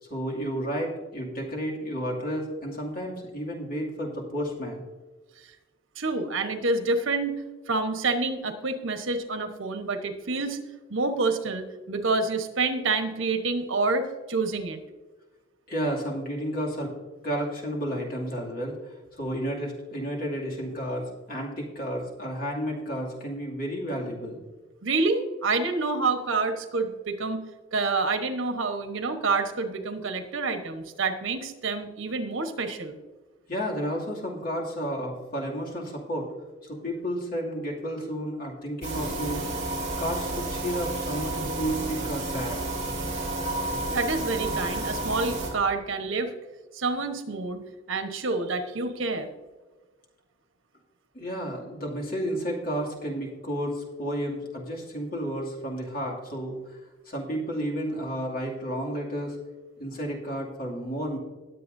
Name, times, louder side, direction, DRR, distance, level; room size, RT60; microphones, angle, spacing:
voice 1, 0.0-4.8 15.7-16.9 17.2-24.4 33.5-36.3 36.6-39.4 40.0-42.6 51.1-56.8 57.1-59.4 59.8-61.2, equal, 45° left, -3 dB, 2.5 m, -32 dB
voice 2, 6.0-10.6 10.9-14.8 24.8-27.4 27.7-33.0 43.9-46.3 46.7-47.6 47.9-49.3, right 3 dB, 90° right, 7 dB, 1.2 m, -28 dB
sound 1, 38.8-45.5, right 2 dB, 35° right, 3.7 m, -31 dB
19.5 x 7.9 x 2.7 m, 1.3 s
head